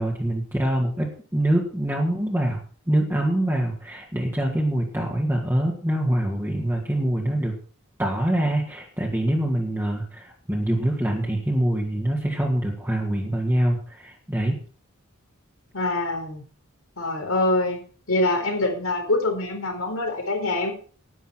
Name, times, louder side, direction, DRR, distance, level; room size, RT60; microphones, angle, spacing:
voice 1, 0.0-2.6 2.9-7.5 8.0-14.6, right 1 dB, 10° right, -2 dB, 2.1 m, -24 dB
voice 2, 15.7-16.4 17.0-17.8 18.1-20.7, left 2 dB, 85° left, 3 dB, 4.3 m, -24 dB
11.0 x 10.0 x 5.9 m, 0.41 s
head